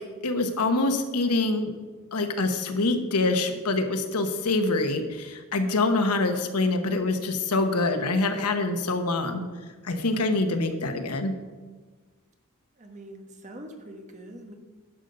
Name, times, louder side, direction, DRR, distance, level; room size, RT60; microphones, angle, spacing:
voice 1, 0.2-1.7 2.1-9.4 9.8-11.3, left 2 dB, 90° left, 7 dB, 1.0 m, -25 dB
voice 2, 12.8-14.6, right 1 dB, 35° right, 4 dB, 1.2 m, -43 dB
10.5 x 6.9 x 5.3 m, 1.4 s
head